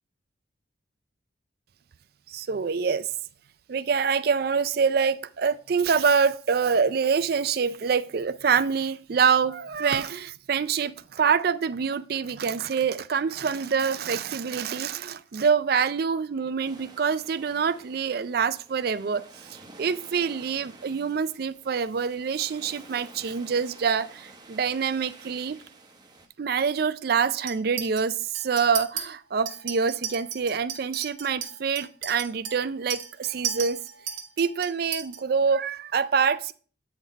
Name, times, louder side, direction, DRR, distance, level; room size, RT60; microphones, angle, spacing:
voice 1, 2.3-3.1 3.7-19.2 19.5-25.6 26.4-33.8 34.4-36.5, right 6 dB, 55° right, 0.4 m, -26 dB
sound 1, 16.6-26.3, right 3 dB, 20° right, 0.8 m, -50 dB
Chink clink, 27.5-28.0 28.3-29.0 29.5-35.2, right 8 dB, 90° right, 1.5 m, -35 dB
8.7 x 3.9 x 4.0 m
head